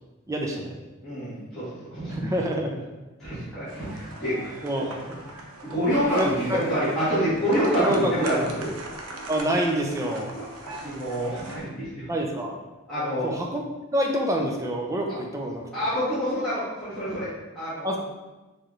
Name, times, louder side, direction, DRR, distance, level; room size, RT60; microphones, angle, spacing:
voice 1, 0.3-0.8 2.1-2.8 4.6-5.2 6.1-6.6 7.8-8.1 9.3-10.3 12.1-12.6 13.2-13.6 13.9-15.8 17.8-18.0, equal, 15° right, 0 dB, 0.5 m, -27 dB
voice 2, 1.0-2.3 3.2-4.9 5.6-8.7 10.3-12.1 12.9-13.3 15.7-17.3 17.5-18.0, equal, ahead, -16 dB, 1.5 m, -27 dB
sound 1, 3.7-11.6, right 2 dB, 80° right, 0.6 m, -40 dB
sound 2, 5.9-11.6, equal, 35° left, 1.2 m, -45 dB
4.6 x 3.2 x 3.1 m, 1.1 s
head